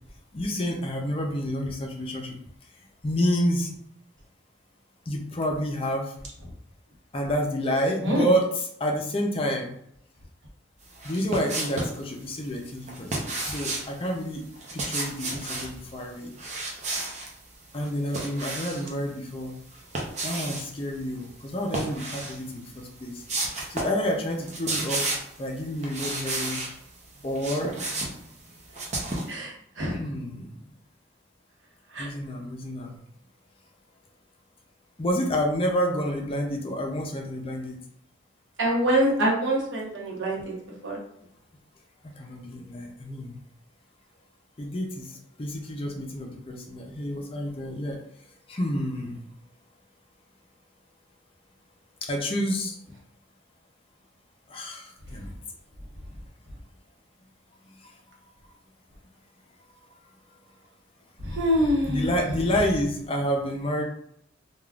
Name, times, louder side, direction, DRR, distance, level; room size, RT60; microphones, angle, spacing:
voice 1, 0.3-2.3 3.0-3.7 5.1-6.1 7.1-9.7 11.0-14.4 14.7-16.3 17.7-19.6 20.2-23.2 23.7-26.6 27.2-27.7 29.9-30.6 32.0-33.0 35.0-37.8 42.0-43.4 44.6-48.0 48.5-49.2 52.0-52.8 54.5-55.3 57.6-57.9 61.3-61.4 61.9-63.8, equal, 30° left, 1 dB, 0.4 m, -29 dB
sound 1, 10.9-12.0 12.9-13.9 14.6-15.7 16.4-17.3 17.7-18.9 19.7-20.7 21.6-22.4 22.8-22.9 23.3-24.0 24.3-25.4 25.8-26.7 27.2-29.3, right 2 dB, 40° right, 0.6 m, -32 dB
voice 2, 29.3-30.0 31.9-32.1 38.6-40.5 40.8-41.0 61.2-62.1, equal, 90° right, -2 dB, 0.9 m, -25 dB
3.4 x 2.3 x 2.3 m, 0.73 s
head